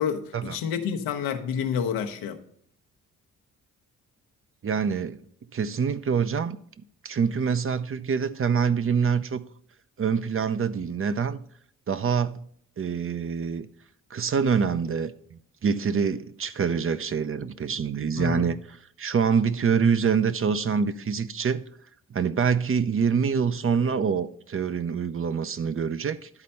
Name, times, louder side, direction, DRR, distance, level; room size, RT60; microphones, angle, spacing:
voice 1, 0.0-2.4 18.1-18.5, left 7 dB, 85° left, 0.9 m, -29 dB
voice 2, 4.6-5.2 5.5-6.6 7.0-9.4 10.0-11.4 11.9-12.4 12.8-13.7 14.1-21.6 22.1-26.3, right 6 dB, 35° right, 0.7 m, -25 dB
11.0 x 4.2 x 5.5 m
supercardioid pair, 50°, 35 cm